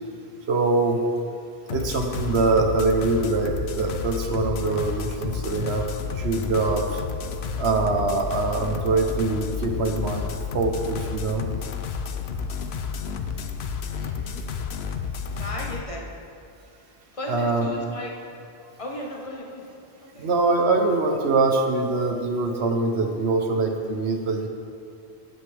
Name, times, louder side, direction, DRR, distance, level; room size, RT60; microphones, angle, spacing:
voice 1, 0.5-1.0 1.7-5.9 6.1-7.0 7.6-11.5 17.3-17.7 20.2-24.5, right 3 dB, 85° right, 3 dB, 1.3 m, -23 dB
sound 1, 1.7-15.8, left 6 dB, 80° left, 0.9 m, -31 dB
voice 2, 13.9-14.4 15.4-16.0 17.1-18.1 18.8-19.6 20.0-20.3, left 1 dB, 30° left, -2 dB, 1.5 m, -36 dB
17.5 x 8.0 x 3.5 m, 2.5 s
omnidirectional pair, 1.1 m